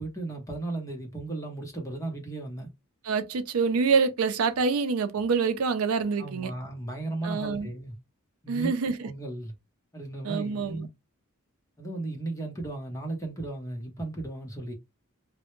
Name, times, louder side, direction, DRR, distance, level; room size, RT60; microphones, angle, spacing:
voice 1, 0.0-2.7 6.2-8.0 8.4-8.7 9.0-9.5 9.9-10.9 11.8-14.7, right 2 dB, 15° left, 0.7 m, -35 dB
voice 2, 3.0-6.5 7.2-7.7 8.5-9.1 10.2-10.9, right 5 dB, 75° right, 0.4 m, -26 dB
2.1 x 2.0 x 3.0 m
head